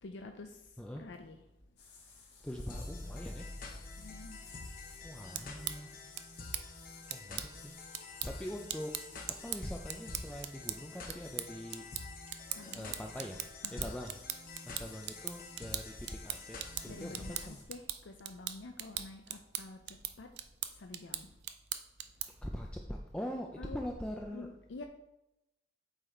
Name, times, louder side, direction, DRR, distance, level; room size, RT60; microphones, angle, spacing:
voice 1, 0.0-1.4 4.0-4.4 12.5-12.9 13.6-13.9 16.9-20.3 20.8-21.3 23.6-23.8 24.3-24.8, left 3 dB, 85° left, 4 dB, 0.5 m, -48 dB
voice 2, 0.8-1.1 2.4-3.5 3.8-3.9 5.0-6.0 7.1-7.7 8.2-8.9 9.4-11.9 12.7-17.7 22.4-24.5, equal, 5° left, 1 dB, 0.4 m, -43 dB
sound 1, 1.8-17.6, left 5 dB, 65° left, 1.8 m, -56 dB
sound 2, 2.7-17.5, left 3 dB, 50° left, 0.8 m, -48 dB
sound 3, 5.3-22.5, right 11 dB, 60° right, 0.4 m, -42 dB
8.0 x 4.0 x 4.3 m, 0.88 s
head